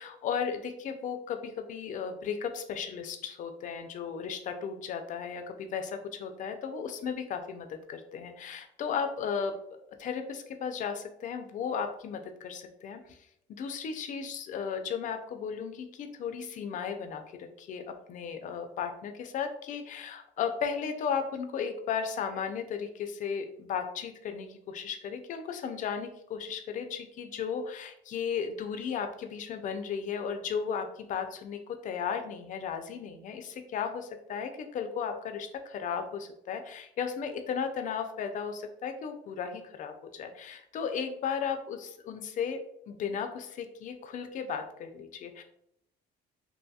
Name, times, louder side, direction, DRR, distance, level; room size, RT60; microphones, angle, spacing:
voice 1, 0.0-9.6 10.0-45.4, left 6 dB, 50° left, 7 dB, 0.4 m, -35 dB
2.7 x 2.7 x 2.2 m, 0.74 s
cardioid pair, 110°, 17 cm